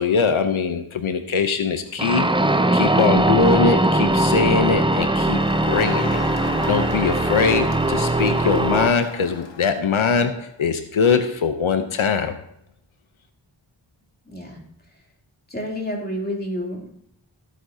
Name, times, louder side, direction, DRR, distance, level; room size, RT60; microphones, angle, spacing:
voice 1, 0.0-2.3 2.7-6.2 6.7-12.4, left 5 dB, 90° left, 9 dB, 0.8 m, -22 dB
sound 1, 2.0-8.9, right 2 dB, 10° right, 0.6 m, -20 dB
Crowd, 5.2-10.0, left 4 dB, 65° left, 1.5 m, -36 dB
voice 2, 14.3-14.6 15.5-17.0, equal, 20° left, -1 dB, 3.1 m, -29 dB
16.0 x 8.4 x 2.8 m, 0.70 s
wide cardioid pair, 50°, 47 cm